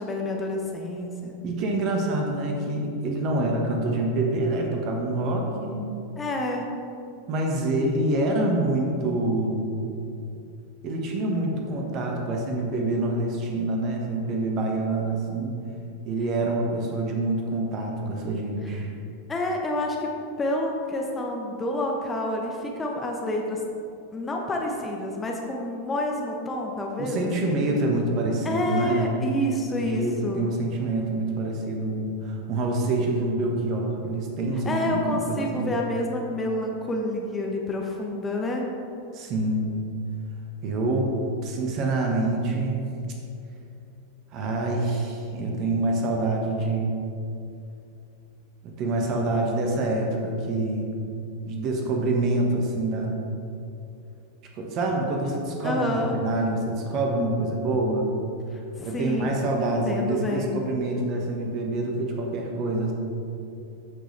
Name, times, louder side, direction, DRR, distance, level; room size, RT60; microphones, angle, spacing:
voice 1, 0.0-1.3 6.1-6.7 18.6-18.7 19.3-20.1 20.4-23.6 24.1-27.7 28.4-30.4 34.6-38.7 55.6-56.2 58.5-59.4 59.9-60.6, left 1 dB, 15° left, 0 dB, 1.0 m, -28 dB
voice 2, 1.4-5.8 7.3-9.8 10.8-15.5 16.0-18.9 27.0-29.1 29.8-35.7 39.1-39.7 40.6-41.1 41.4-42.9 44.3-46.9 48.6-50.9 51.4-53.2 54.6-58.1 58.8-62.9, right 2 dB, 35° right, 1 dB, 1.5 m, -26 dB
13.0 x 6.6 x 3.4 m, 2.7 s
figure-of-eight pair, 90°, 0 cm